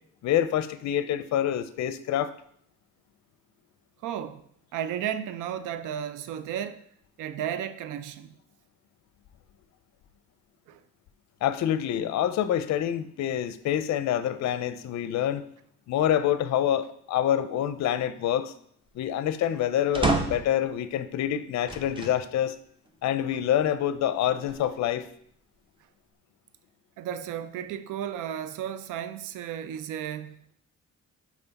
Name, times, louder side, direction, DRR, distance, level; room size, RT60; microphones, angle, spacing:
voice 1, 0.2-2.3 11.4-15.5 15.9-18.5 19.0-22.6 23.0-25.1, left 10 dB, 65° left, 0.5 m, -26 dB
voice 2, 4.0-4.4 4.7-6.8 7.2-8.3 10.7-10.8 23.3-23.4 27.0-30.5, right 10 dB, 85° right, 0.5 m, -34 dB
sound 1, 19.9-20.6 21.7-22.2 22.9-23.0 24.2-25.0, right 2 dB, 15° right, 0.8 m, -29 dB
5.6 x 4.7 x 4.0 m
cardioid pair, 90°, 30 cm